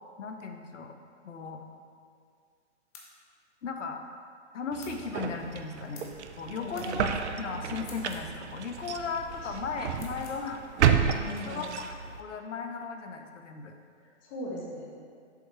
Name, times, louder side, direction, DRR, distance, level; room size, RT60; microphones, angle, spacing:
voice 1, 0.2-0.9 1.2-1.6 3.6-4.0 4.5-7.1 7.4-13.7, left 5 dB, 85° left, 5 dB, 0.8 m, -37 dB
sound 1, 2.9-3.1 4.8-5.0 5.9-6.2 6.8-6.9 7.8-8.3 9.9-10.4, left 5 dB, 30° left, 0.8 m, -49 dB
sound 2, 4.7-12.2, right 8 dB, 70° right, 0.5 m, -31 dB
voice 2, 6.6-7.0 11.2-11.7 14.2-14.8, left 1 dB, 15° left, -3 dB, 0.4 m, -38 dB
7.0 x 4.6 x 3.1 m, 2.2 s
hypercardioid pair, 145°, 35 cm